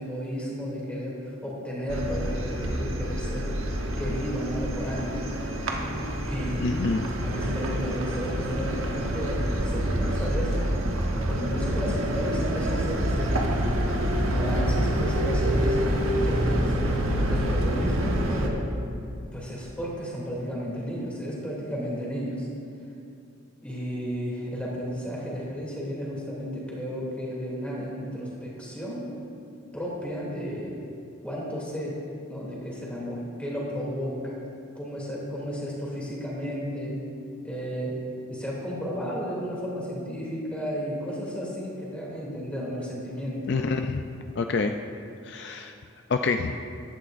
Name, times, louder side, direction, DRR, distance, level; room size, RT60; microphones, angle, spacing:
voice 1, 0.0-3.6 4.0-5.3 6.2-6.7 7.2-10.7 11.3-13.8 14.2-17.0 17.2-18.6 19.3-22.5 23.6-29.1 29.7-30.7 31.2-32.0 32.3-34.4 34.7-37.0 37.4-38.0 38.3-43.5, equal, 5° left, -5 dB, 2.7 m, -33 dB
sound 1, 1.9-18.5, equal, 80° right, 1.2 m, -27 dB
voice 2, 6.6-7.0 43.5-44.0 44.4-44.8 45.2-45.7 46.1-46.6, left 4 dB, 55° left, 5 dB, 0.4 m, -27 dB
15.0 x 12.0 x 2.5 m, 2.5 s
head